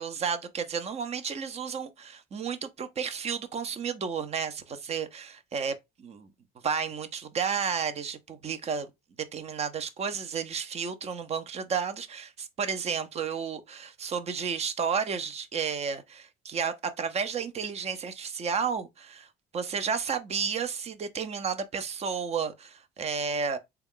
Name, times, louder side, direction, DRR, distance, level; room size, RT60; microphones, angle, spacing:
voice 1, 0.0-6.3 6.6-8.9 9.3-19.3 19.5-23.6, right 6 dB, 40° right, 0.6 m, -32 dB
3.6 x 2.3 x 3.6 m
cardioid pair, 110°, 17 cm